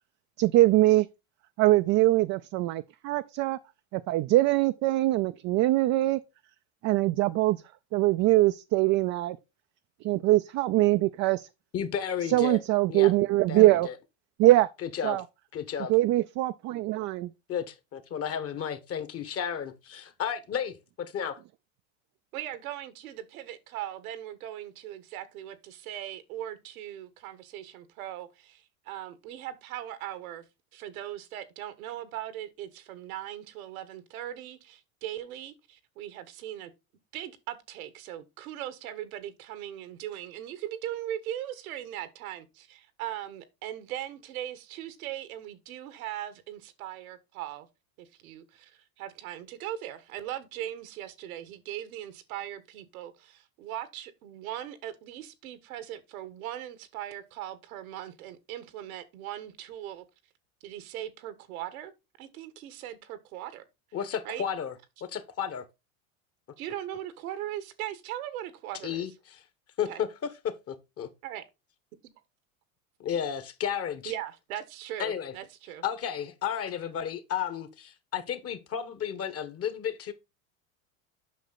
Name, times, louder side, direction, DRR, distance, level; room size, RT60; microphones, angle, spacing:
voice 1, 0.4-1.1 1.6-3.6 3.9-6.2 6.8-7.6 7.9-9.4 10.0-11.5 12.3-13.9 14.4-14.7 15.0-15.2 15.9-17.3, right 17 dB, 40° right, 0.5 m, -23 dB
voice 2, 11.7-12.6 12.9-13.1 13.5-13.9 14.8-15.2 15.5-15.9 17.5-21.4 63.9-64.7 65.0-65.7 68.8-69.1 69.8-71.1 73.0-74.1 75.0-75.3 75.8-80.1, left 8 dB, 35° left, 1.3 m, -33 dB
voice 3, 22.3-30.4 30.7-36.7 37.1-47.7 48.0-60.0 60.6-61.9 62.2-63.6 64.2-64.4 66.6-69.1 69.9-70.0 71.2-71.4 74.0-75.8, right 12 dB, 85° right, 1.5 m, -39 dB
8.3 x 5.8 x 4.0 m
supercardioid pair, 120°, 42 cm